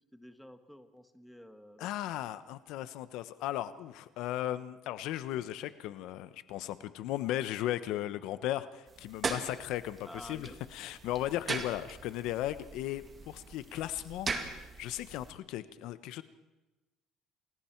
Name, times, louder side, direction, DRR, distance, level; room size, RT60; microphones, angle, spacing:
voice 1, 0.1-2.0 10.0-10.6, equal, ahead, 8 dB, 1.4 m, -50 dB
voice 2, 1.8-16.2, left 13 dB, 75° left, 14 dB, 0.9 m, -36 dB
sound 1, 8.9-15.3, right 4 dB, 25° right, 2.2 m, -40 dB
29.0 x 21.0 x 4.6 m, 1.1 s
cardioid pair, 135°, 0 cm